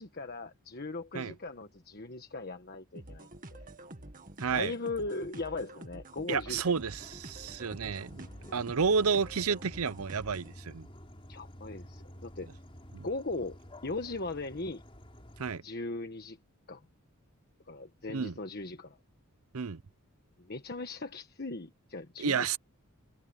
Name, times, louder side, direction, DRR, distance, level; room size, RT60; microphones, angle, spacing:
voice 1, 0.0-3.6 4.5-6.8 7.9-8.0 8.5-8.6 11.3-12.5 13.0-13.6 13.8-14.8 15.6-16.4 16.7-16.8 17.7-19.0 20.4-22.5, left 2 dB, 45° left, 1.4 m, -39 dB
sound 1, 3.0-10.6, right 1 dB, 40° right, 2.0 m, -48 dB
voice 2, 4.4-4.7 6.3-8.3 8.5-10.9 12.9-13.0 15.4-15.6 18.1-18.3 19.5-19.8 22.2-22.6, right 5 dB, 80° right, 0.7 m, -31 dB
sound 2, 6.5-15.6, equal, 25° left, 4.8 m, -51 dB
head